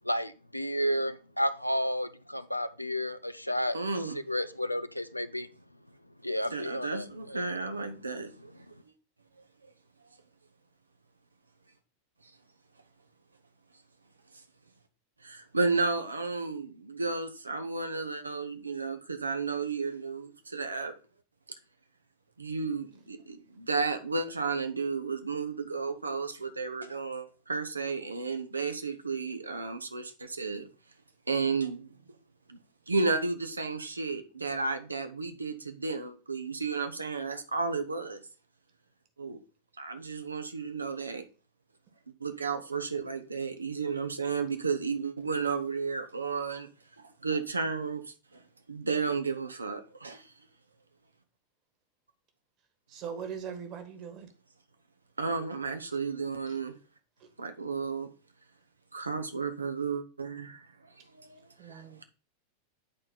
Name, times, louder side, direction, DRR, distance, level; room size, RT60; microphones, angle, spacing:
voice 1, 0.0-3.8 4.3-5.5 6.2-7.5, equal, 90° left, 0.5 m, -31 dB
voice 2, 3.7-4.2 6.4-8.5 15.2-20.9 22.4-30.7 31.3-31.9 32.5-32.6 32.9-38.2 39.2-39.4 39.8-41.2 42.2-46.7 47.0-48.0 48.7-50.2 55.2-56.7 57.4-58.1 58.9-60.6 61.2-61.3 61.7-62.0, right 4 dB, 80° right, 0.9 m, -33 dB
voice 3, 52.9-54.3 61.6-62.0, right 7 dB, 35° right, 1.7 m, -40 dB
9.0 x 4.4 x 4.0 m
figure-of-eight pair, 90°, 0 cm